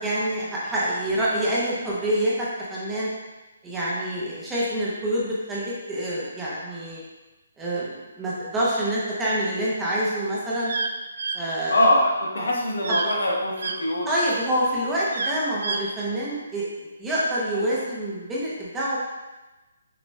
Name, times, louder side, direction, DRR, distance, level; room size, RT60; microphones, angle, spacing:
voice 1, 0.0-3.1 3.6-7.0 7.6-10.7 11.3-11.8 12.4-12.5 14.1-16.6 17.0-19.0, right 1 dB, 5° right, -7 dB, 0.5 m, -26 dB
sound 1, 10.7-10.9 11.2-11.4 12.8-13.2 13.6-13.7 15.1-15.8, right 4 dB, 55° right, 0.4 m, -28 dB
voice 2, 11.7-14.1, left 1 dB, 75° left, -2 dB, 1.0 m, -23 dB
6.0 x 2.2 x 3.2 m, 1.1 s
hypercardioid pair, 175°, 0 cm